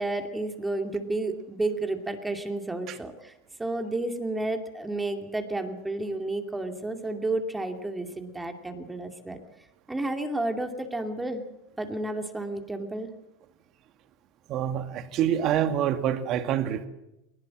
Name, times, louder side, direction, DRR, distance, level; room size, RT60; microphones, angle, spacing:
voice 1, 0.0-3.3 3.6-9.4 9.9-11.4 11.8-13.1, right 2 dB, 10° right, 5 dB, 2.6 m, -31 dB
voice 2, 14.5-16.9, right 10 dB, 45° right, 9 dB, 2.1 m, -26 dB
21.5 x 19.5 x 7.7 m, 0.92 s
hypercardioid pair, 95°, 0 cm